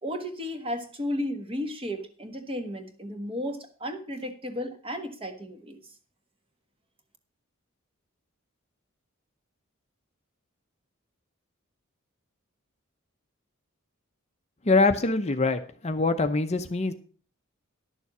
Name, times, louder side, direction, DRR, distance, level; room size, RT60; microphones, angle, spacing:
voice 1, 0.0-5.8, equal, 25° right, 7 dB, 1.4 m, -34 dB
voice 2, 14.6-16.9, left 3 dB, 30° left, 8 dB, 0.7 m, -24 dB
11.0 x 7.0 x 6.0 m, 0.41 s
head